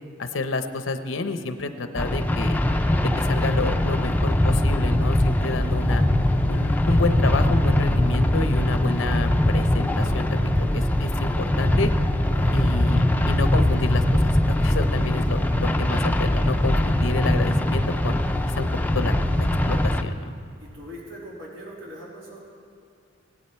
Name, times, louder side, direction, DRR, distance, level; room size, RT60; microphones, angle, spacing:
voice 1, 0.2-2.6 3.0-6.1 6.5-11.9 12.5-14.3 14.6-18.2 18.6-18.7 18.9-20.3, left 3 dB, 80° left, 9 dB, 0.7 m, -29 dB
sound 1, 1.9-20.0, left 1 dB, 10° left, 0.5 m, -21 dB
voice 2, 12.3-12.7 20.6-22.4, equal, 85° right, -4 dB, 3.1 m, -41 dB
17.0 x 12.0 x 4.4 m, 2.5 s
head